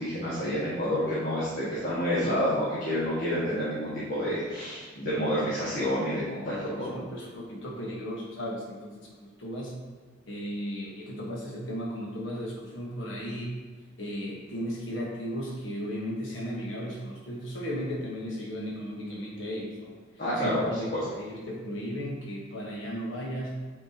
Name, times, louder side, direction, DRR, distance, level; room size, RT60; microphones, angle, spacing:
voice 1, 0.0-7.0 20.2-20.8, equal, 45° left, -10 dB, 1.6 m, -29 dB
voice 2, 6.4-8.9 9.2-9.7 10.3-13.6 14.0-19.9 20.3-20.9 21.2-23.6, equal, 70° left, -3 dB, 1.2 m, -35 dB
8.5 x 4.4 x 2.8 m, 1.5 s
head